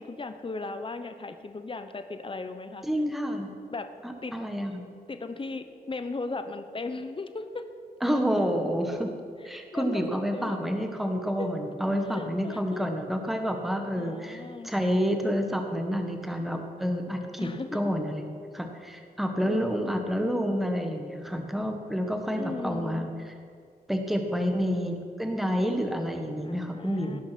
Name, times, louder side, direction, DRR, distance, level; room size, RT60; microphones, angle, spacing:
voice 1, 0.0-2.9 3.7-3.9 4.2-4.3 5.1-7.7 8.9-9.0 9.4-10.6 11.4-11.5 12.1-12.9 13.9-14.7 17.4-17.8 19.4-19.9 22.4-23.1 26.4-27.2, left 3 dB, 35° left, 9 dB, 0.8 m, -37 dB
voice 2, 2.8-3.5 4.0-4.8 8.0-9.1 9.4-23.1 23.9-27.2, equal, ahead, 4 dB, 1.4 m, -29 dB
17.5 x 6.0 x 6.0 m, 2.2 s
wide cardioid pair, 80°, 16 cm